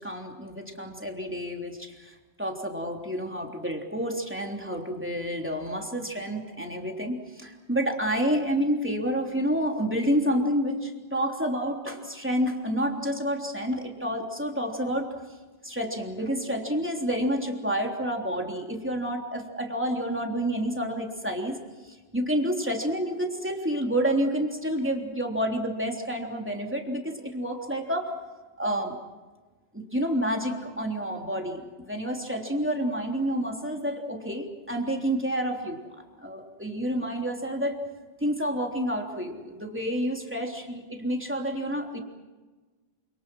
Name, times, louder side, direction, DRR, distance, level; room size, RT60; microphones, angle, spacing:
voice 1, 0.0-15.1 15.6-21.6 21.8-28.1 28.6-29.0 29.7-35.8 36.2-37.8 38.2-42.0, equal, 10° right, 1 dB, 3.4 m, -29 dB
28.5 x 27.0 x 6.2 m, 1.3 s
omnidirectional pair, 1.1 m